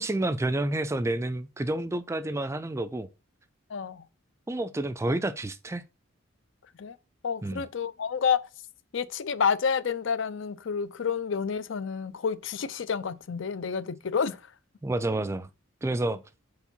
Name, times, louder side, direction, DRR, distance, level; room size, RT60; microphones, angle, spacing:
voice 1, 0.0-3.1 4.5-5.8 7.4-7.6 14.8-15.5 15.8-16.2, right 1 dB, 15° right, 0.3 m, -29 dB
voice 2, 3.7-4.0 6.8-7.0 7.2-8.4 8.9-14.4, left 6 dB, 65° left, 0.5 m, -29 dB
4.8 x 4.4 x 5.4 m
head